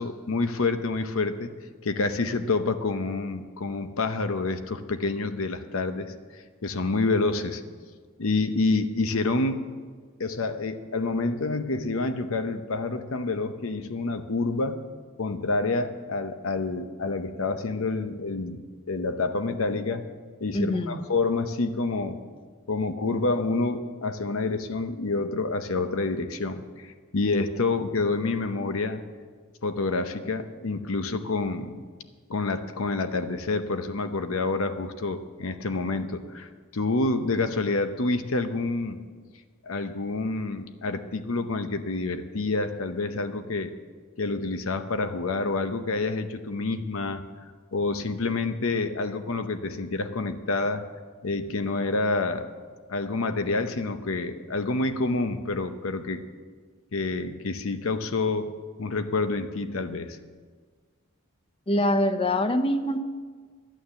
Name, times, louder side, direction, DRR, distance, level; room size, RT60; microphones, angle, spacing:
voice 1, 0.0-1.5 1.8-6.1 6.6-7.6 8.2-9.6 10.2-14.8 15.2-20.1 20.4-22.2 22.7-29.0 29.6-31.8 32.3-39.0 39.6-43.7 44.2-47.3 47.7-50.8 51.2-52.5 52.9-56.2 56.9-58.5 58.8-60.2, left 3 dB, 70° left, 9 dB, 0.8 m, -28 dB
voice 2, 20.5-21.0 61.7-63.0, left 1 dB, 25° left, 9 dB, 0.6 m, -24 dB
11.5 x 9.1 x 6.9 m, 1.6 s
head